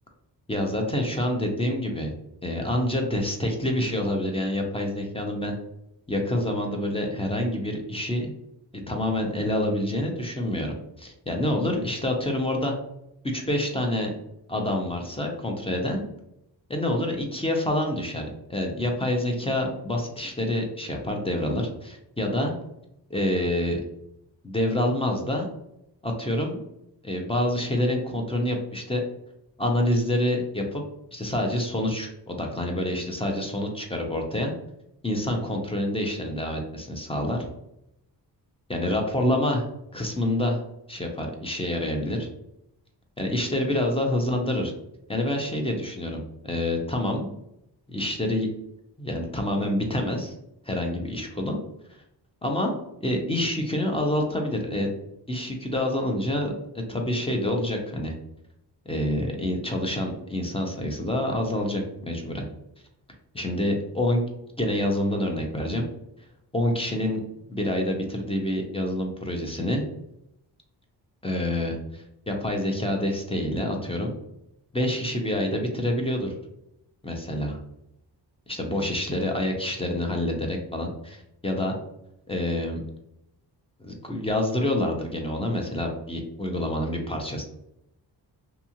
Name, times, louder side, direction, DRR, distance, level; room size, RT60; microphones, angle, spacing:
voice 1, 0.5-2.1 2.4-5.5 6.1-8.3 8.9-12.7 13.2-14.1 14.5-16.0 16.7-22.5 23.1-23.8 24.4-25.5 26.0-26.6 27.0-29.0 29.6-30.8 31.1-34.5 35.0-37.5 38.7-39.7 39.9-40.6 40.9-42.3 43.2-44.7 45.1-47.3 47.9-48.5 49.0-50.3 50.7-51.6 52.4-52.7 53.0-54.9 55.3-58.1 58.9-62.5 63.3-64.2 64.6-65.9 66.5-67.2 67.5-69.9 71.2-74.1 74.7-76.3 77.0-77.6 78.5-81.8 82.3-82.8 83.8-87.4, left 1 dB, 15° left, 2 dB, 0.4 m, -27 dB
2.7 x 2.4 x 2.8 m, 0.80 s
wide cardioid pair, 120°, 42 cm